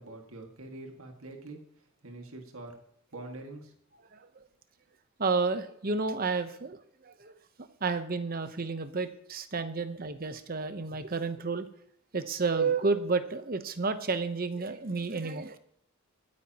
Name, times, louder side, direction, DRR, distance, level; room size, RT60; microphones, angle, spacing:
voice 1, 0.0-2.8 3.1-3.8, right 2 dB, 70° right, 3 dB, 2.0 m, -45 dB
voice 2, 5.2-6.8 7.0-7.3 7.8-11.7 12.1-15.6, right 4 dB, 40° right, 10 dB, 0.9 m, -31 dB
24.5 x 9.6 x 3.0 m, 0.69 s
head